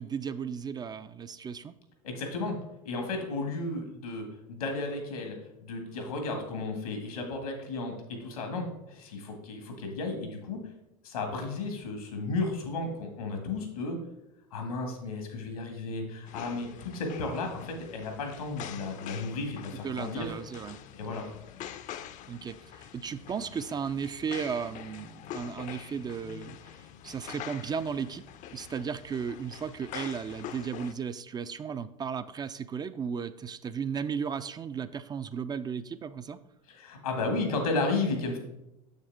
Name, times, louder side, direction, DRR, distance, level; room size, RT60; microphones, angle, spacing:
voice 1, 0.0-1.7 19.8-20.8 22.3-28.2 28.5-36.4, right 6 dB, 20° right, 12 dB, 0.3 m, -35 dB
voice 2, 2.0-2.6 2.8-10.6 11.0-14.0 14.5-20.3 20.9-21.3 36.7-38.4, left 3 dB, 85° left, 3 dB, 1.8 m, -33 dB
sound 1, 16.3-30.9, left 10 dB, 45° left, 0.5 m, -45 dB
7.0 x 6.4 x 3.5 m, 0.89 s
hypercardioid pair, 85°, 18 cm